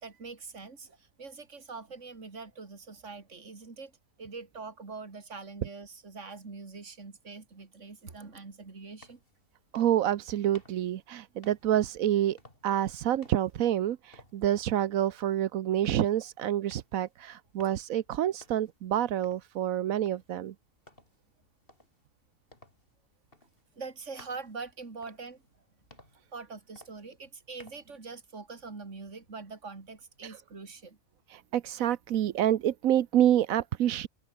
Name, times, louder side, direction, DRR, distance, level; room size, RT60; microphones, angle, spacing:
voice 1, 0.0-3.9 4.2-9.2 23.7-25.4 26.3-31.0, right 4 dB, 60° right, 3.2 m, -43 dB
sound 1, 8.8-28.0, left 2 dB, 40° left, 5.2 m, -60 dB
voice 2, 9.7-12.4 12.6-20.5 30.2-30.4 31.3-34.1, right 11 dB, 85° right, 1.2 m, -28 dB
omnidirectional pair, 1.4 m